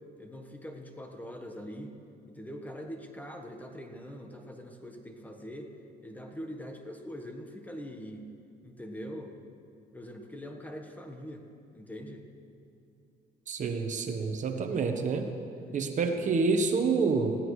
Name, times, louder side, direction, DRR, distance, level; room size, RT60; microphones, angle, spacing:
voice 1, 0.2-1.9 2.3-5.7 6.0-8.2 8.6-9.3 9.9-11.5 11.7-12.2 14.1-14.6 15.5-16.2, equal, 10° left, 4 dB, 1.3 m, -43 dB
voice 2, 13.5-15.3 15.7-17.4, right 4 dB, 45° right, 6 dB, 1.2 m, -28 dB
20.0 x 16.0 x 3.3 m, 2.6 s
cardioid pair, 110°, 17 cm